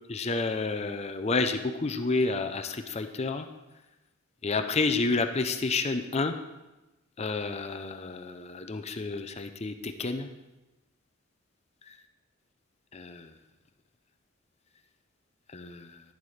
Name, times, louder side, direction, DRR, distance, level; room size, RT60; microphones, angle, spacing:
voice 1, 0.1-3.5 4.4-6.3 7.2-10.3 11.9-12.0 12.9-13.3 15.5-16.0, left 3 dB, 30° left, 8 dB, 0.5 m, -30 dB
11.0 x 10.5 x 3.3 m, 1.0 s
head